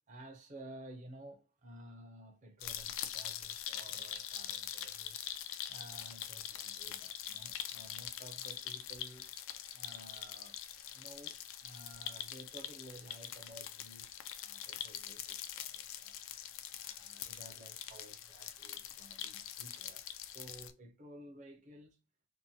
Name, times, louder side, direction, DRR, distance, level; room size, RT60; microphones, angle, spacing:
voice 1, 0.1-5.2 5.7-9.3 9.7-10.6 10.9-16.2 16.7-20.1 20.3-22.0, right 1 dB, 35° right, 0.5 m, -54 dB
sound 1, 2.6-20.7, left 10 dB, 80° left, 0.3 m, -44 dB
2.7 x 2.1 x 2.7 m
head